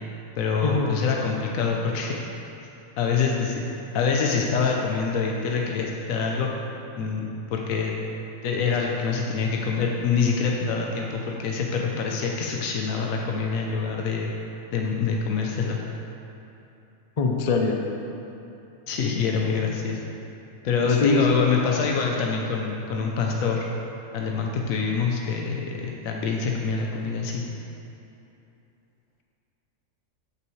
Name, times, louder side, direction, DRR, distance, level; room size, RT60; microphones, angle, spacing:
voice 1, 0.4-2.3 3.0-3.6 3.9-6.5 6.9-8.0 8.4-14.3 14.7-15.8 18.9-20.0 20.6-23.7 24.1-27.4, left 5 dB, 75° left, 0 dB, 1.1 m, -25 dB
voice 2, 17.2-17.8 20.8-21.3, left 3 dB, 50° left, 1 dB, 0.5 m, -22 dB
14.0 x 5.8 x 3.1 m, 2.8 s
omnidirectional pair, 1.5 m